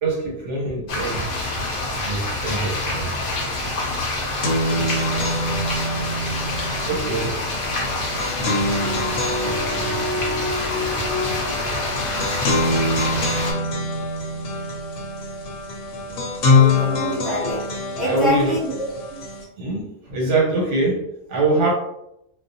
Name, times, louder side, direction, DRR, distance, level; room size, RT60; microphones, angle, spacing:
voice 1, 0.0-1.3 1.9-3.3 6.9-7.4 8.9-10.3 18.0-18.6 19.6-21.7, right 3 dB, 80° right, -2 dB, 1.1 m, -24 dB
sound 1, 0.9-13.5, left 2 dB, 55° left, 0.7 m, -26 dB
sound 2, 3.9-19.4, left 2 dB, 80° left, 0.9 m, -25 dB
voice 2, 16.5-19.2, equal, ahead, -4 dB, 0.4 m, -26 dB
2.4 x 2.0 x 2.6 m, 0.81 s
omnidirectional pair, 1.2 m